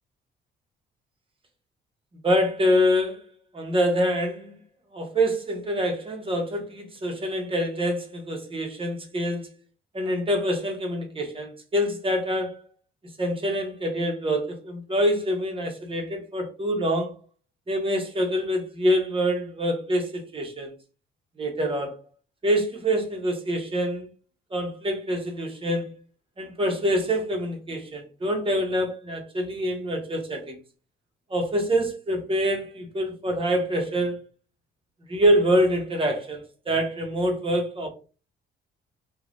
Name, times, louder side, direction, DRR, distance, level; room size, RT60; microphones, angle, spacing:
voice 1, 2.2-3.3 3.5-4.5 4.9-9.5 9.9-12.7 13.2-17.2 17.7-20.7 21.4-22.0 22.4-24.1 24.5-25.9 26.4-30.6 31.3-34.2 35.1-37.9, equal, 25° right, 1.0 m, -25 dB
3.1 x 2.4 x 2.6 m
cardioid pair, 90°, 20 cm